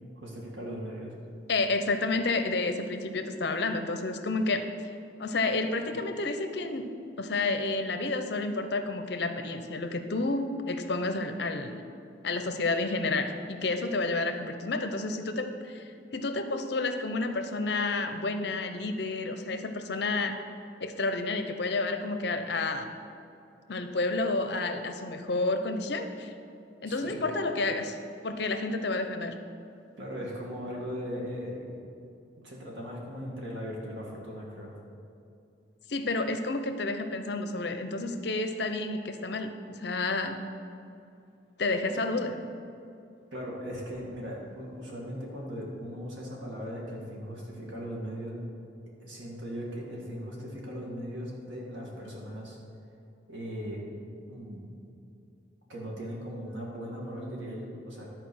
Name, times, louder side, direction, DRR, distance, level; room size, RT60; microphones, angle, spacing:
voice 1, 0.2-1.1 26.8-27.2 30.0-31.8 32.4-34.7 43.3-48.4 49.0-52.6 53.3-53.8 54.3-54.7 55.7-58.1, equal, 80° right, -3 dB, 2.1 m, -38 dB
voice 2, 1.5-4.7 5.2-6.9 7.2-11.8 12.2-15.8 16.1-20.4 20.8-22.9 23.7-26.3 26.8-28.0 28.2-29.4 35.9-40.4 41.6-42.4, left 3 dB, 65° left, 7 dB, 0.6 m, -30 dB
12.5 x 4.5 x 6.2 m, 2.6 s
head